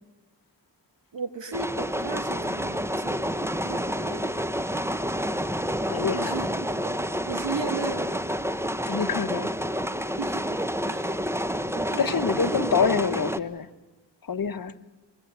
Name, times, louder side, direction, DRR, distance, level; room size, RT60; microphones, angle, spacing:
voice 1, 1.1-3.3 3.6-4.4 6.1-7.0 7.2-8.2 10.2-11.3 11.7-12.6, right 5 dB, 70° right, 7 dB, 2.0 m, -36 dB
sound 1, 1.5-13.4, equal, 5° right, 1.0 m, -29 dB
voice 2, 5.9-6.4 8.8-9.5 12.0-13.7 14.2-14.8, left 6 dB, 50° left, 10 dB, 1.1 m, -26 dB
23.0 x 23.0 x 8.2 m, 1.2 s
cardioid pair, 45°, 44 cm